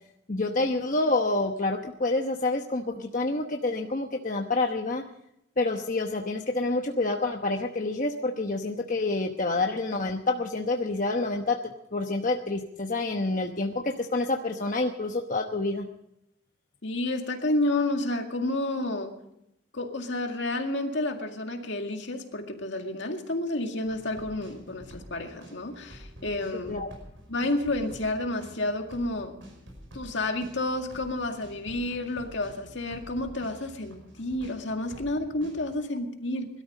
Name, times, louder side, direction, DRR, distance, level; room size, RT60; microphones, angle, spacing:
voice 1, 0.3-5.0 5.6-11.6 11.9-15.9 26.7-26.9, left 2 dB, 40° left, 3 dB, 1.0 m, -28 dB
voice 2, 16.8-19.1 19.7-26.7 27.3-29.4 29.9-36.5, left 2 dB, 70° left, 4 dB, 2.1 m, -30 dB
sound 1, 23.8-35.8, equal, 80° right, 5.4 m, -48 dB
21.0 x 13.0 x 5.3 m, 0.81 s
head